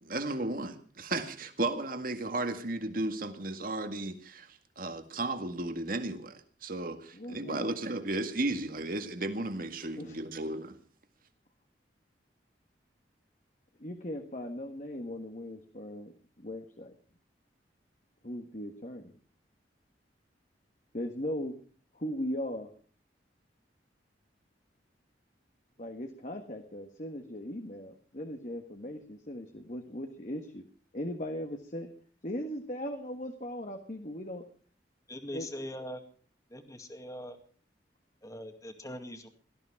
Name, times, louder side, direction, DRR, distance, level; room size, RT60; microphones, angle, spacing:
voice 1, 0.0-10.8, right 2 dB, 50° right, 2.0 m, -34 dB
voice 2, 7.1-7.7 10.0-10.2 13.8-16.9 18.2-19.2 20.9-21.5 21.9-22.7 25.8-30.7 30.9-31.9 32.2-34.4 35.3-35.5, equal, 40° left, 1.6 m, -38 dB
voice 3, 35.1-36.0 36.5-37.4 38.2-39.3, left 1 dB, 20° left, 2.2 m, -41 dB
18.0 x 14.0 x 4.8 m
head